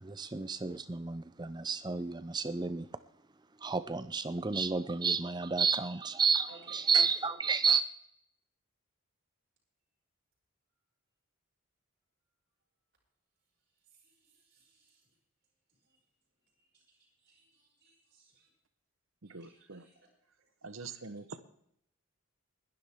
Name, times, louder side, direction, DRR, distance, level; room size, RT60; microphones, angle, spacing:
voice 1, 0.0-2.9 3.6-7.8, right 5 dB, 20° right, 0.5 m, -31 dB
voice 2, 6.5-6.8 7.2-7.4 13.9-15.1 15.9-16.0 16.4-18.5 19.2-20.1 20.4-20.5, right 3 dB, 45° right, 5.8 m, -62 dB
voice 3, 19.3-19.8 20.6-21.3, right 4 dB, 65° right, 1.0 m, -45 dB
20.5 x 11.0 x 3.6 m
head